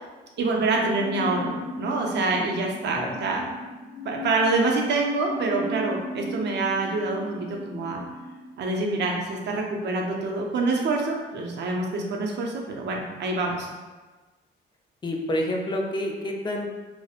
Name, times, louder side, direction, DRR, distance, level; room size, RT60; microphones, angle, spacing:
voice 1, 0.4-3.5 4.0-7.4 7.7-8.0 8.6-13.7, right 3 dB, 60° right, 0 dB, 0.5 m, -26 dB
sound 1, 1.0-8.5, left 1 dB, 70° left, 0.8 m, -36 dB
voice 2, 15.0-16.7, left 1 dB, 25° left, 1 dB, 0.4 m, -28 dB
2.7 x 2.0 x 2.4 m, 1.3 s
cardioid pair, 90°, 20 cm